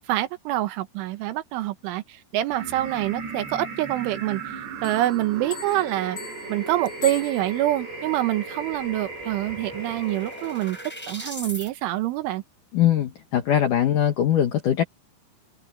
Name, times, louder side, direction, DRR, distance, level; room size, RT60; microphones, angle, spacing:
voice 1, 0.1-4.4 4.8-6.2 6.5-10.8 11.1-12.4, right 15 dB, 85° right, 3.6 m, -26 dB
sound 1, 2.5-11.5, right 4 dB, 65° right, 9.8 m, -37 dB
Bell, 4.8-7.9, left 6 dB, 30° left, 6.7 m, -40 dB
sound 2, 8.8-8.9 9.2-11.7, equal, 5° left, 3.4 m, -40 dB
voice 2, 12.7-14.8, left 10 dB, 70° left, 2.0 m, -21 dB
omnidirectional pair, 5.5 m